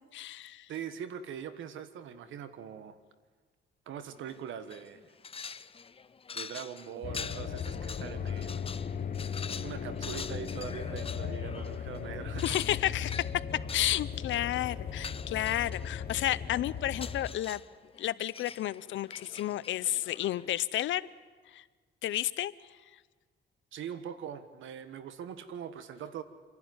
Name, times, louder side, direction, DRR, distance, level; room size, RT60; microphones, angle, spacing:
voice 1, 0.1-0.7 12.4-13.1 13.7-17.6 18.0-21.0 21.5-21.6 22.0-22.5, left 13 dB, 75° left, 18 dB, 0.7 m, -31 dB
voice 2, 0.7-3.0 3.9-5.0 6.3-8.6 9.6-12.6 23.7-26.2, right 8 dB, 75° right, 11 dB, 1.5 m, -42 dB
sound 1, 4.2-4.4 4.7-20.6, left 6 dB, 30° left, 0.6 m, -46 dB
sound 2, 7.0-17.3, left 7 dB, 45° left, 1.3 m, -37 dB
27.0 x 11.5 x 9.5 m, 1.5 s
cardioid pair, 90°, 20 cm